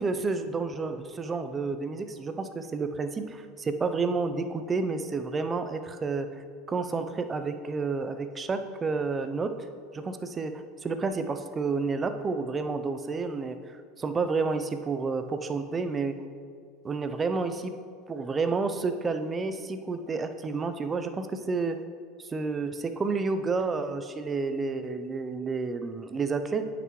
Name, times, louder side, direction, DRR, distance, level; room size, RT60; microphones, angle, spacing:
voice 1, 0.0-9.7 9.9-16.2 16.8-17.7 18.1-21.8 22.2-26.7, right 4 dB, 25° right, 8 dB, 0.5 m, -30 dB
9.1 x 5.9 x 3.1 m, 2.2 s
supercardioid pair, 110°, 0 cm